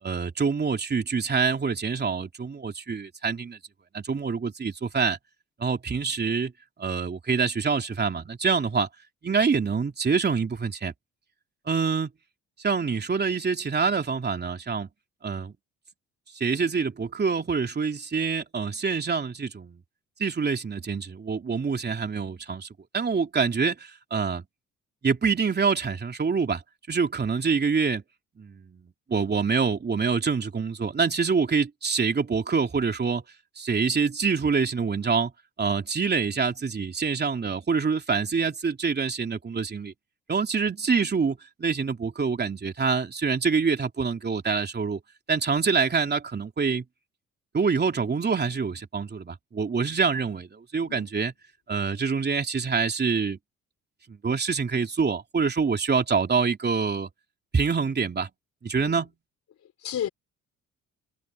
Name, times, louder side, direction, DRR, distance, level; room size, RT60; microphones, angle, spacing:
voice 1, 0.0-3.6 3.9-5.2 5.6-6.5 6.8-8.9 9.2-10.9 11.7-12.1 12.6-14.9 15.2-15.6 16.3-19.8 20.2-22.7 22.9-24.4 25.0-26.6 26.9-28.0 28.4-33.2 33.6-35.3 35.6-39.9 40.3-45.0 45.3-46.8 47.5-51.3 51.7-53.4 54.1-57.1 57.5-58.3 58.6-59.1, right 5 dB, 35° right, 3.2 m, -26 dB
voice 2, 59.8-60.1, left 10 dB, 65° left, 3.9 m, -32 dB
cardioid pair, 90°, 30 cm